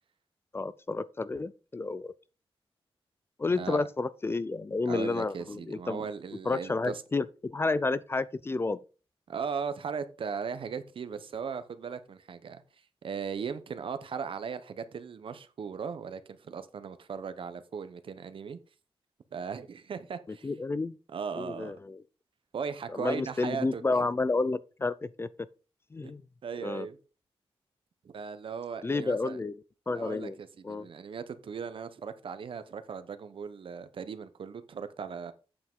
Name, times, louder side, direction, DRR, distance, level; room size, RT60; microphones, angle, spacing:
voice 1, 0.5-2.1 3.4-6.0 6.5-8.8 20.4-21.0 21.4-22.0 22.9-25.3 25.9-26.2 26.6-26.9 28.8-29.6 29.9-30.4 30.6-30.9, left 3 dB, 25° left, 0.4 m, -30 dB
voice 2, 3.5-3.9 4.9-7.0 9.3-12.6 13.0-18.6 19.3-20.5 21.1-21.8 22.5-23.8 26.0-26.1 26.4-27.0 28.0-29.4 29.9-35.3, right 6 dB, 60° right, 0.9 m, -38 dB
8.5 x 7.3 x 3.7 m
wide cardioid pair, 135°, 10 cm